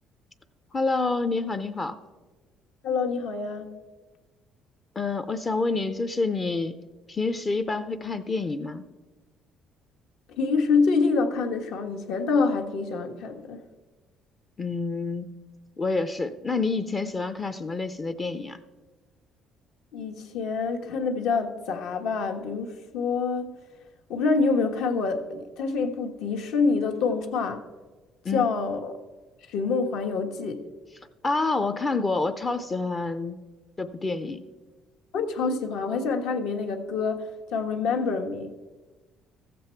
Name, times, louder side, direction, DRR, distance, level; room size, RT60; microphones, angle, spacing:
voice 1, 0.7-2.0 5.0-6.8 7.1-8.8 14.6-15.4 15.8-18.6 28.2-28.5 31.2-33.4 33.8-34.4, left 3 dB, 25° left, 9 dB, 0.4 m, -28 dB
voice 2, 2.8-3.7 10.4-13.6 19.9-23.5 24.1-27.6 28.3-29.0 29.5-30.6 35.1-38.5, left 4 dB, 75° left, 4 dB, 1.3 m, -26 dB
15.0 x 7.6 x 4.4 m, 1.3 s
cardioid pair, 150°, 0 cm